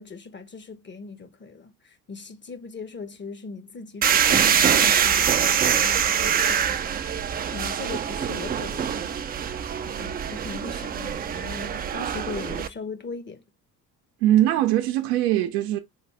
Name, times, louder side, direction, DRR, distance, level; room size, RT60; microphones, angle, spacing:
voice 1, 0.0-9.6 10.0-13.4, left 4 dB, 25° left, 0.7 m, -39 dB
sound 1, 4.0-12.7, right 8 dB, 20° right, 0.4 m, -24 dB
voice 2, 14.2-15.8, right 13 dB, 70° right, 0.7 m, -21 dB
4.0 x 3.2 x 3.3 m
figure-of-eight pair, 55°, 47 cm